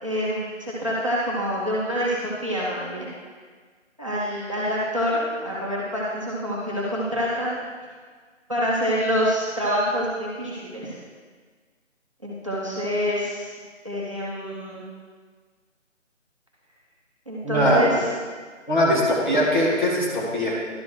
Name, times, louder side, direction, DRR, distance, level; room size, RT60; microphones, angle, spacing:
voice 1, 0.0-3.1 4.0-7.5 8.5-10.9 12.2-13.5 13.8-14.8 17.3-18.1, equal, 25° right, -6 dB, 0.9 m, -26 dB
voice 2, 17.4-17.8 18.7-20.5, equal, 35° left, -4 dB, 1.7 m, -21 dB
11.5 x 4.2 x 4.7 m, 1.5 s
figure-of-eight pair, 180°, 39 cm